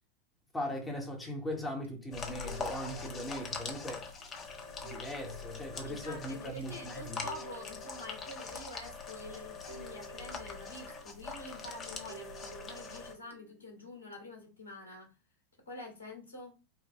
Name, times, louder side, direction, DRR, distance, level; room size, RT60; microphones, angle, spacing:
voice 1, 0.5-4.1 4.8-7.2, equal, 15° left, 1.6 m, -39 dB
sound 1, 1.2-14.0, right 8 dB, 85° right, 1.0 m, -56 dB
sound 2, 2.1-13.1, left 4 dB, 30° left, 1.2 m, -43 dB
voice 2, 5.7-15.1 15.7-16.5, left 2 dB, 75° left, 1.8 m, -47 dB
5.0 x 2.7 x 3.3 m
figure-of-eight pair, 90°, 0 cm